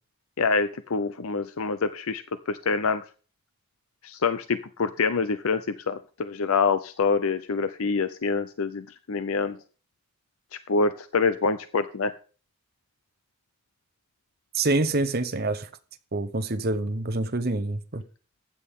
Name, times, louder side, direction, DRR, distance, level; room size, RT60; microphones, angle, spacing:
voice 1, 0.4-2.2 2.5-3.0 4.0-9.6 10.7-12.1, left 4 dB, 75° left, 0.6 m, -26 dB
voice 2, 14.5-15.7 16.1-18.0, right 2 dB, 45° right, 0.9 m, -26 dB
15.0 x 10.0 x 3.7 m
head